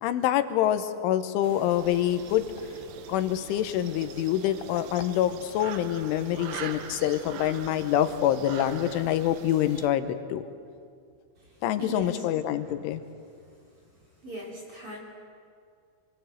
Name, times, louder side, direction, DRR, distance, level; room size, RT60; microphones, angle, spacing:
voice 1, 0.0-2.5 3.1-10.4 11.6-13.0, left 11 dB, 85° left, 10 dB, 3.3 m, -26 dB
sound 1, 1.4-9.9, right 8 dB, 75° right, 2.1 m, -43 dB
voice 2, 11.8-12.3 12.7-12.8 14.2-15.0, equal, 30° right, -2 dB, 3.8 m, -38 dB
26.5 x 21.0 x 7.8 m, 2.3 s
omnidirectional pair, 5.6 m